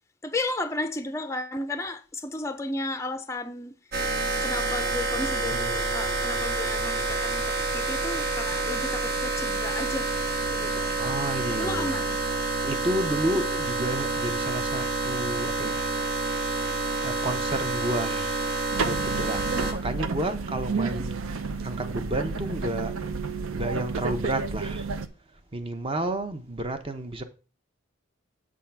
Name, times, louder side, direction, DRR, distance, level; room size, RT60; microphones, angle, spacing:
voice 1, 0.2-3.7 4.4-10.1 10.5-10.9 11.6-12.2, left 2 dB, 15° left, 0.5 m, -33 dB
sound 1, 3.9-19.7, right 3 dB, 45° right, 1.2 m, -28 dB
voice 2, 11.0-12.0 12.6-18.4 18.8-22.9 23.6-24.9 25.5-27.2, right 1 dB, 25° right, 0.7 m, -31 dB
sound 2, 18.7-25.1, right 4 dB, 70° right, 0.6 m, -31 dB
7.4 x 3.7 x 5.7 m
head